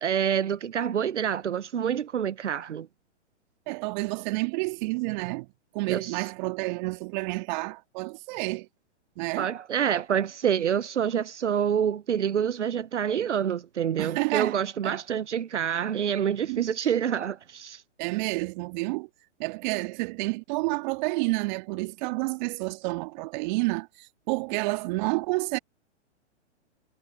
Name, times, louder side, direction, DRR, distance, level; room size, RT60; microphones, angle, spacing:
voice 1, 0.0-2.9 5.9-6.3 9.4-17.8, right 8 dB, 80° right, 0.7 m, -27 dB
voice 2, 3.7-5.5 5.7-8.7 9.2-9.5 14.0-15.0 16.5-16.7 18.0-19.1 19.4-25.6, right 25 dB, 40° right, 2.1 m, -29 dB
figure-of-eight pair, 115°, 35 cm